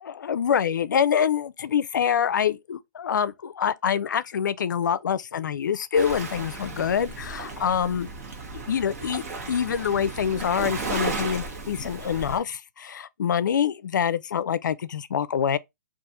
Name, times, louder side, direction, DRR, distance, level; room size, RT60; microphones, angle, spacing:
voice 1, 0.0-8.1 8.5-15.6, left 8 dB, 80° left, 0.4 m, -25 dB
Waves surf, 5.9-12.4, right 3 dB, 50° right, 1.1 m, -34 dB
2.5 x 2.4 x 4.1 m
hypercardioid pair, 160°, 10 cm